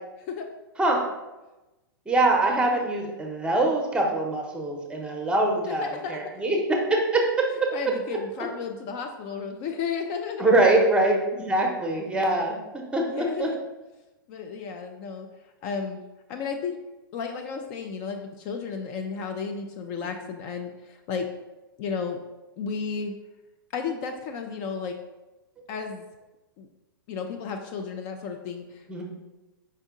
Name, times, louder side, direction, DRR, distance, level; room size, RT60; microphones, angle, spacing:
voice 1, 2.1-7.7 10.4-13.5 28.9-29.0, right 2 dB, 10° right, 0 dB, 0.8 m, -23 dB
voice 2, 5.7-6.4 7.7-10.5 13.1-13.6 14.3-15.3 15.6-16.0 16.3-16.8 17.1-21.3 21.8-22.2 22.6-23.1 23.7-25.0 25.7-26.1 26.6-26.7 27.1-29.0, left 5 dB, 40° left, 4 dB, 0.4 m, -33 dB
5.2 x 2.6 x 3.7 m, 1.0 s
hypercardioid pair, 115°, 12 cm